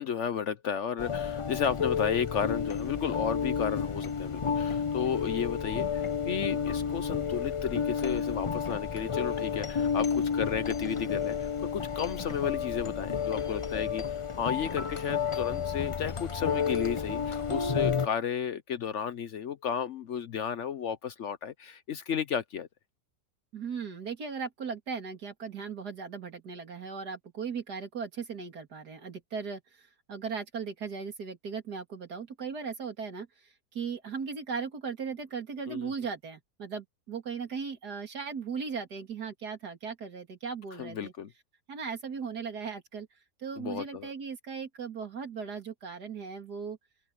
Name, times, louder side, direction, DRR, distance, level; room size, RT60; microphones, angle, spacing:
voice 1, 0.0-22.7 35.7-35.9 40.8-41.3 43.6-44.1, left 8 dB, 60° left, 0.9 m, -33 dB
sound 1, 1.0-18.1, left 6 dB, 35° left, 0.5 m, -31 dB
voice 2, 23.5-41.1 41.7-43.1 43.4-46.8, right 5 dB, 80° right, 3.1 m, -37 dB
omnidirectional pair, 1.7 m